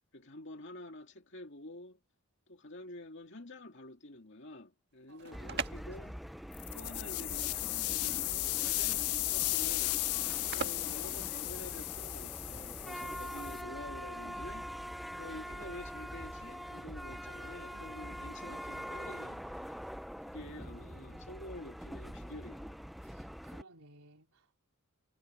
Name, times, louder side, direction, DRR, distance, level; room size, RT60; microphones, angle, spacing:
voice 1, 0.1-2.0 2.5-6.2 6.7-10.0 10.5-14.7 15.2-19.8 20.2-22.8, left 1 dB, 55° left, 2.4 m, -48 dB
sound 1, 4.9-12.0, right 5 dB, 50° right, 1.6 m, -44 dB
voice 2, 5.1-5.8 10.4-10.8 17.7-18.5 20.4-21.3 23.0-24.6, right 2 dB, 80° right, 4.0 m, -61 dB
sound 2, 5.3-23.6, equal, ahead, 0.4 m, -44 dB
sound 3, 6.5-13.6, left 21 dB, 80° left, 0.4 m, -35 dB
head